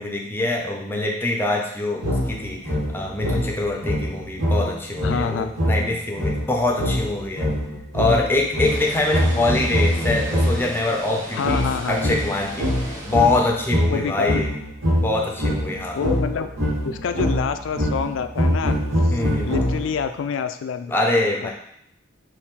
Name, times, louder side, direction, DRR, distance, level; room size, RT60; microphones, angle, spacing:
voice 1, 0.0-7.5 7.9-14.5 14.9-16.0 19.1-19.5 20.9-21.5, left 2 dB, 10° left, 0 dB, 0.6 m, -24 dB
sound 1, 2.0-10.8 11.4-20.1, equal, 75° right, 1.6 m, -24 dB
voice 2, 5.0-5.5 11.3-12.1 13.9-14.3 15.9-16.5 16.8-18.7 19.0-19.2 19.5-21.0 21.4-21.5, left 6 dB, 65° left, 9 dB, 0.3 m, -26 dB
Water, 8.6-13.7, equal, 15° right, 1.3 m, -37 dB
4.2 x 2.6 x 3.7 m, 0.72 s
head